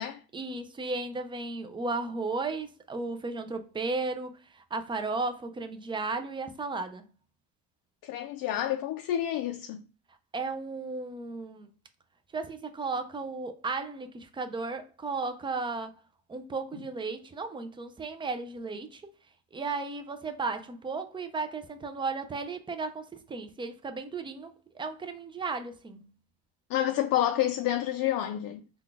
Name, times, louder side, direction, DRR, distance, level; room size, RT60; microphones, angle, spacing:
voice 1, 0.3-7.0 10.3-11.7 12.3-15.9 16.3-19.1 19.5-26.1, right 3 dB, 15° right, 0.3 m, -35 dB
voice 2, 8.0-9.8 26.7-28.6, left 12 dB, 65° left, 0.5 m, -29 dB
3.9 x 2.3 x 3.3 m
cardioid pair, 115°, 39 cm